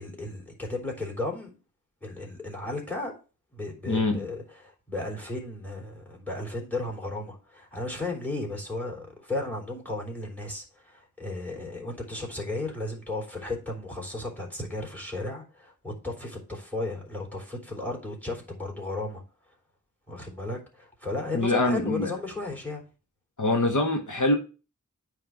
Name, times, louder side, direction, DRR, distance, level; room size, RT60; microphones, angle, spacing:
voice 1, 0.0-1.5 2.0-3.1 3.5-19.2 20.1-22.8, left 2 dB, 5° left, 3.3 m, -34 dB
voice 2, 3.9-4.2 21.3-22.1 23.4-24.3, left 2 dB, 75° left, 1.4 m, -24 dB
9.1 x 3.5 x 6.3 m
wide cardioid pair, 65°, 30 cm